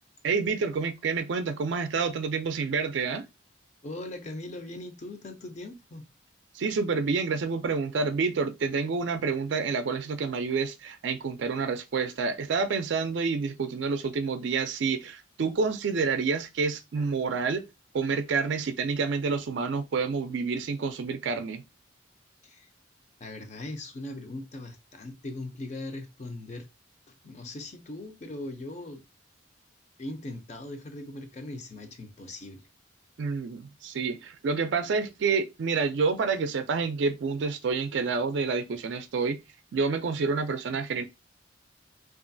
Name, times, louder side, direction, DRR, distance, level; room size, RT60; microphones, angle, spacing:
voice 1, 0.2-3.3 6.5-17.6 17.9-21.6 33.2-39.4 39.7-41.0, right 4 dB, 60° right, 0.4 m, -28 dB
voice 2, 3.8-6.1 22.4-22.7 23.2-26.7 27.1-29.0 30.0-32.6, left 2 dB, 35° left, 0.5 m, -40 dB
3.0 x 2.4 x 2.5 m
head